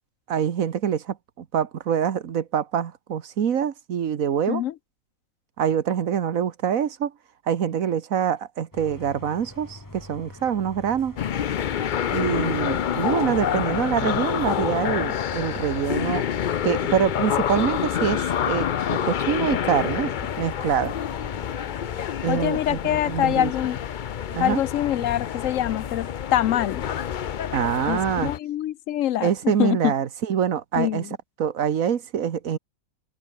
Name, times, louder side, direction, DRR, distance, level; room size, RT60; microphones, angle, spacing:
voice 1, 0.3-4.6 5.6-7.1 7.5-11.2 12.1-16.3 16.6-20.1 20.4-20.9 22.2-23.5 24.3-24.6 27.5-28.3 29.2-31.1 31.4-32.6, right 8 dB, 80° right, 1.6 m, -25 dB
sound 1, 8.7-22.0, left 1 dB, 15° left, 2.1 m, -44 dB
sound 2, 11.2-28.4, left 9 dB, 50° left, 0.6 m, -27 dB
voice 2, 22.3-23.8 24.4-26.8 27.9-29.9 30.8-31.1, left 12 dB, 75° left, 1.0 m, -25 dB
omnidirectional pair, 1.4 m